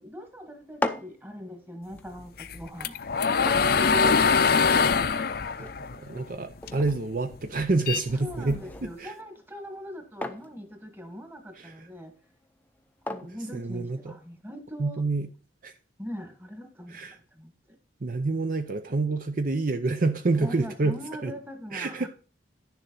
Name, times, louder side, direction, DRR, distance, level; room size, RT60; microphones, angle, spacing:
voice 1, 0.0-3.0 8.1-12.1 13.0-15.0 16.0-17.5 20.4-22.1, equal, 10° right, 1.5 m, -41 dB
sound 1, 0.5-14.4, left 2 dB, 10° left, 0.6 m, -41 dB
sound 2, 2.4-6.9 7.3-8.8, left 5 dB, 55° left, 0.6 m, -23 dB
voice 2, 5.6-9.1 11.6-11.9 13.5-14.1 14.8-15.3 15.6-15.7 16.9-17.2 18.0-21.0 21.2-21.3 21.7-22.1, right 3 dB, 50° right, 0.6 m, -28 dB
10.5 x 7.0 x 3.8 m
head